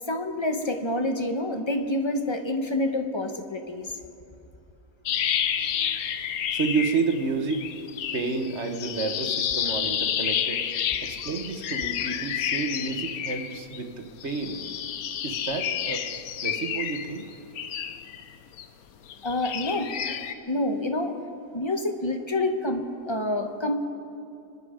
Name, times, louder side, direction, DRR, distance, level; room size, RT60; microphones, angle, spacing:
voice 1, 0.1-3.9 19.2-20.2 20.5-21.1 21.5-23.7, left 1 dB, 25° left, 6 dB, 0.7 m, -27 dB
sound 1, 5.1-7.3 7.5-13.8 14.2-18.6 19.1-20.3, left 9 dB, 65° left, 1.1 m, -30 dB
voice 2, 6.5-7.7 8.1-10.6 11.0-14.6 15.2-16.1 16.4-17.3, right 4 dB, 45° right, 6 dB, 1.4 m, -30 dB
24.5 x 11.0 x 5.0 m, 2.6 s
omnidirectional pair, 1.8 m